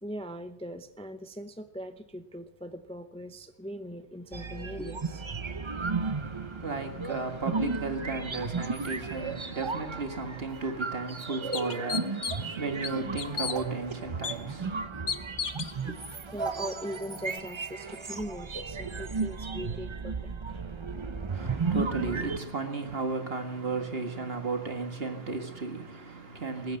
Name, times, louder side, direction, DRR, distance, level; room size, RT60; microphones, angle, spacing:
voice 1, 0.0-5.3 15.5-20.6, equal, 5° left, 0.6 m, -40 dB
sound 1, 4.3-22.4, right 4 dB, 30° right, 0.7 m, -34 dB
voice 2, 6.0-14.9 21.3-26.8, right 3 dB, 60° right, 2.0 m, -34 dB
sound 2, 10.5-10.6 11.1-11.2 11.5-12.5 12.8-13.6 14.2-14.3 15.1-15.7, left 6 dB, 45° left, 0.8 m, -33 dB
19.5 x 9.1 x 7.8 m
omnidirectional pair, 1.2 m